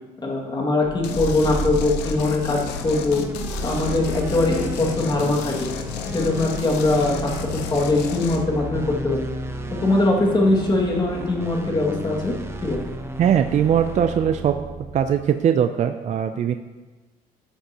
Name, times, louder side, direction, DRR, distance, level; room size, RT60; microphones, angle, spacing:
voice 1, 0.2-3.2 3.6-5.5 6.1-7.4 7.7-9.2 9.8-12.3 12.6-12.8, left 2 dB, 25° left, -1 dB, 2.1 m, -21 dB
sound 1, 0.8-15.4, right 2 dB, 15° right, 0.9 m, -33 dB
sound 2, 1.0-8.4, left 7 dB, 90° left, 0.8 m, -32 dB
voice 2, 13.2-14.6 14.9-16.5, right 9 dB, 45° right, 8 dB, 0.5 m, -20 dB
12.5 x 7.9 x 2.9 m, 1.2 s
cardioid pair, 110°, 17 cm